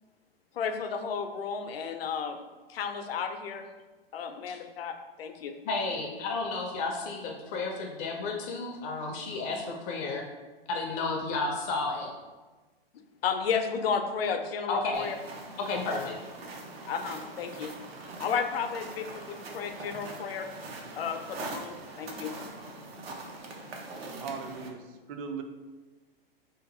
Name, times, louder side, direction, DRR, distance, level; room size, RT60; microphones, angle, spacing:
voice 1, 0.6-2.4 2.7-3.7 4.1-5.6 13.2-15.2 16.9-17.7 18.2-20.5 21.0-22.3, left 6 dB, 75° left, 6 dB, 0.5 m, -33 dB
voice 2, 5.6-10.2 10.7-12.1 14.7-15.1 15.6-16.2, left 3 dB, 30° left, 1 dB, 0.4 m, -32 dB
sound 1, 14.9-24.7, right 2 dB, 75° right, 0.7 m, -42 dB
voice 3, 24.2-25.4, right 5 dB, 35° right, 6 dB, 0.4 m, -38 dB
2.8 x 2.6 x 3.7 m, 1.3 s
hypercardioid pair, 120°, 30 cm